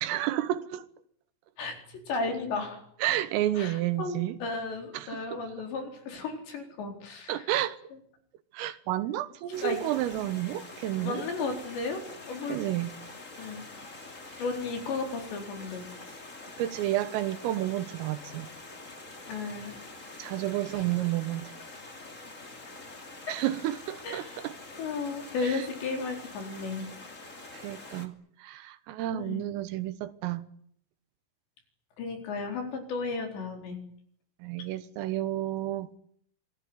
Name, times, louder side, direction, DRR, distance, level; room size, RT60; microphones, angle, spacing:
voice 1, 0.0-0.9 3.0-4.4 4.9-5.4 7.3-7.8 8.5-11.3 12.5-12.9 16.6-18.5 20.2-21.5 23.3-24.5 25.4-25.7 27.5-28.1 28.4-30.4 34.4-35.9, right 14 dB, 85° right, 3.9 m, -31 dB
voice 2, 1.6-2.8 3.6-7.5 9.6-9.8 11.0-12.6 13.4-13.7 14.4-15.8 19.3-19.8 20.7-20.9 24.0-24.4 24.8-26.9 29.1-29.4 32.0-33.8, left 4 dB, 60° left, 6.3 m, -34 dB
Stream, 9.5-28.1, left 2 dB, 25° left, 1.8 m, -46 dB
26.5 x 19.0 x 9.7 m
omnidirectional pair, 5.8 m